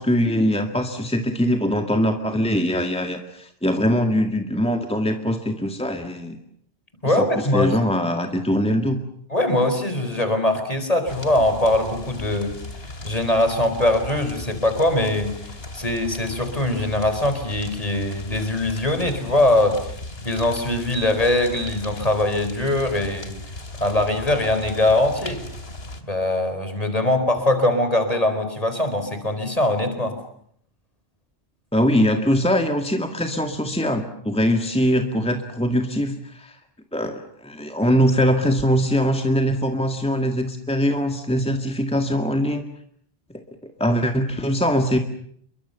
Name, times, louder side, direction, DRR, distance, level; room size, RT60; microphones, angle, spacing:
voice 1, 0.0-6.4 7.2-9.0 31.7-36.6 36.9-42.6 43.6-45.0, equal, 5° left, 6 dB, 2.0 m, -22 dB
voice 2, 7.0-7.8 9.3-12.5 13.0-19.8 20.2-23.4 23.8-25.4 26.0-30.2, left 1 dB, 35° left, 8 dB, 4.7 m, -22 dB
sound 1, 11.1-26.0, left 2 dB, 80° left, 2.9 m, -37 dB
29.5 x 23.0 x 7.0 m, 0.66 s
omnidirectional pair, 1.0 m